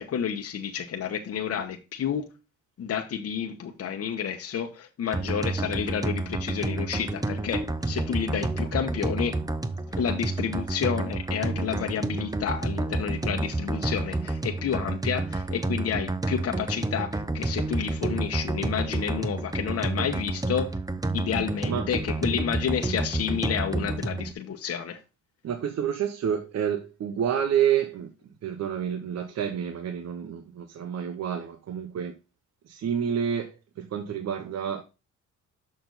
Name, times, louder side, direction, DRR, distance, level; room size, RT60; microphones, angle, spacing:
voice 1, 0.0-2.2 2.8-9.4 10.0-20.7 21.1-25.0, left 8 dB, 50° left, 1.1 m, -30 dB
sound 1, 5.1-24.3, right 2 dB, 10° right, 0.7 m, -30 dB
voice 2, 25.4-28.1 28.4-32.1 32.7-34.8, right 8 dB, 60° right, 0.9 m, -29 dB
6.5 x 5.9 x 4.0 m
cardioid pair, 90°, 30 cm